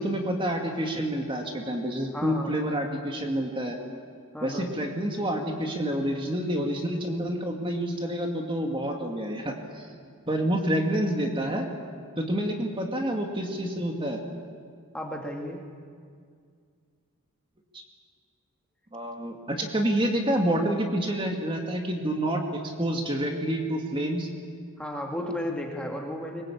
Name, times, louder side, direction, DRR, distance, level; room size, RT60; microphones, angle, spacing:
voice 1, 0.0-3.8 4.4-9.9 10.3-11.7 12.2-14.2 17.7-17.8 18.9-24.3, right 1 dB, 25° right, 2 dB, 2.1 m, -28 dB
voice 2, 2.1-2.6 4.3-4.7 14.9-15.6 24.8-26.4, left 1 dB, 5° left, 0 dB, 2.0 m, -34 dB
23.5 x 21.0 x 8.6 m, 2.1 s
head